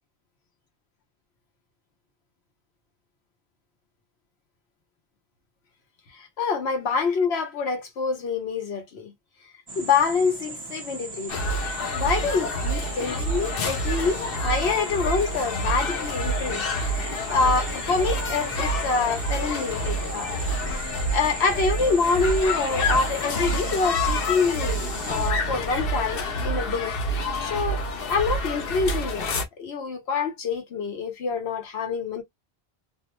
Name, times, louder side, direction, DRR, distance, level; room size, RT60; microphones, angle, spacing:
voice 1, 6.1-9.1 9.8-11.4 11.9-20.3 21.1-26.9 27.4-32.2, left 4 dB, 85° left, 1.1 m, -26 dB
sound 1, 9.7-25.3, right 3 dB, 30° right, 0.6 m, -38 dB
sound 2, 11.3-29.4, equal, 65° left, 0.9 m, -28 dB
2.7 x 2.0 x 2.9 m
omnidirectional pair, 1.1 m